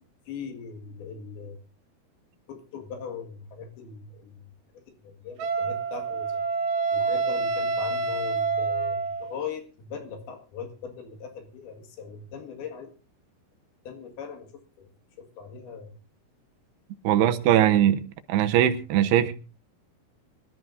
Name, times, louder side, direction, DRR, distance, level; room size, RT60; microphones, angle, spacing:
voice 1, 0.3-1.6 2.5-4.5 5.0-6.4 6.9-12.9 13.9-14.5 14.8-14.9 15.2-15.9 17.1-17.3 17.6-17.9, left 5 dB, 70° left, 3.7 m, -40 dB
Wind instrument woodwind instrument, 5.4-9.4, right 4 dB, 65° right, 2.5 m, -27 dB
voice 2, 17.0-18.0 18.3-19.3, right 11 dB, 90° right, 3.0 m, -20 dB
24.5 x 12.5 x 2.6 m
omnidirectional pair, 4.6 m